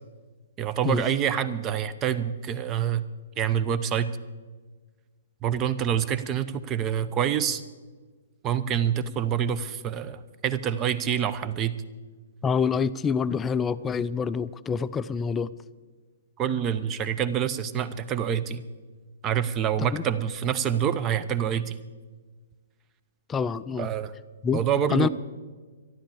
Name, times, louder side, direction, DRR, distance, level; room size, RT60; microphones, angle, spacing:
voice 1, 0.6-3.0 3.4-4.2 5.4-7.6 8.4-11.7 16.4-18.6 19.2-21.7 23.8-24.1 24.5-25.1, right 9 dB, 25° right, 14 dB, 0.7 m, -26 dB
voice 2, 12.4-15.5 19.9-20.0 23.3-23.9 24.4-24.6 24.9-25.1, left 6 dB, 15° left, 14 dB, 0.4 m, -26 dB
13.0 x 12.0 x 7.0 m, 1.4 s
figure-of-eight pair, 120°, 0 cm